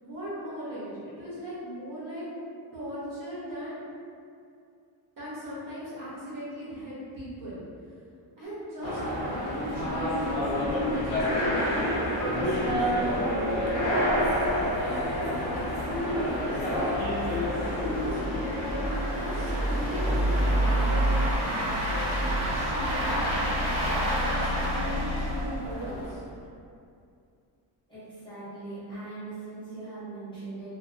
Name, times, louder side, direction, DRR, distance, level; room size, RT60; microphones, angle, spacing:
voice 1, 0.0-2.2 2.7-3.8 5.2-7.6 8.4-14.3 14.8-18.2 18.7-21.2 21.8-22.2 22.5-23.7 24.0-26.2, equal, 50° right, -9 dB, 0.8 m, -39 dB
sound 1, 8.4-14.3 14.6-14.7 15.1-15.7 16.1-16.2 16.8-16.9 17.2-17.4 17.7-18.9, left 3 dB, 90° left, 0.8 m, -38 dB
sound 2, 8.8-21.0, equal, 55° left, 0.6 m, -29 dB
sound 3, 12.1-26.3, equal, 85° right, 0.9 m, -29 dB
voice 2, 27.9-30.8, right 3 dB, 10° left, -14 dB, 0.7 m, -40 dB
2.3 x 2.2 x 2.4 m, 2.5 s
wide cardioid pair, 180°, 45 cm